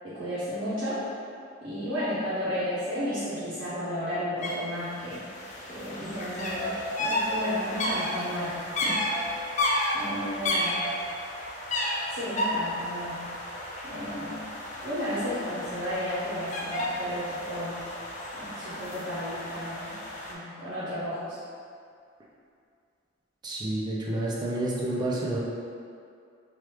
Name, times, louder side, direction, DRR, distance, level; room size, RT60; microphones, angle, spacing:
voice 1, 0.0-1.0 1.6-5.2 5.6-9.0 9.9-10.9 12.1-13.4 13.8-14.4 14.8-17.9 18.3-20.0 20.3-21.4, equal, 65° right, -11 dB, 0.7 m, -33 dB
sound 1, 4.4-4.5 4.8-20.3, left 1 dB, 40° left, 0.4 m, -32 dB
voice 2, 23.4-25.4, right 1 dB, 20° right, -5 dB, 0.4 m, -29 dB
3.0 x 2.3 x 3.2 m, 2.4 s
head